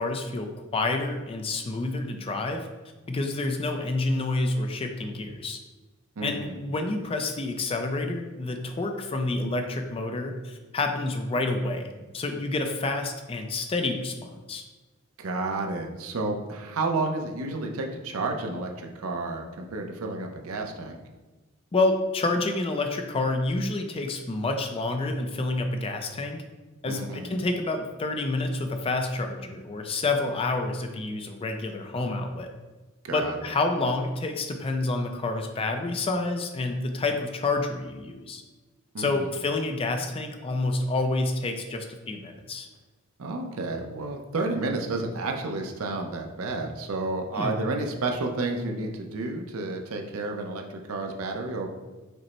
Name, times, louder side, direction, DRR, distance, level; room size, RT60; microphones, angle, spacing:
voice 1, 0.0-2.7 3.1-5.6 6.2-11.8 12.1-14.6 21.7-26.4 26.8-32.5 33.1-38.4 39.0-42.7 47.3-47.6, left 2 dB, 25° left, 5 dB, 0.4 m, -28 dB
voice 2, 6.2-6.6 15.2-21.0 26.8-27.4 33.0-33.4 38.9-39.3 43.2-51.7, right 3 dB, 85° right, 3 dB, 0.6 m, -31 dB
5.1 x 2.1 x 4.3 m, 1.2 s
head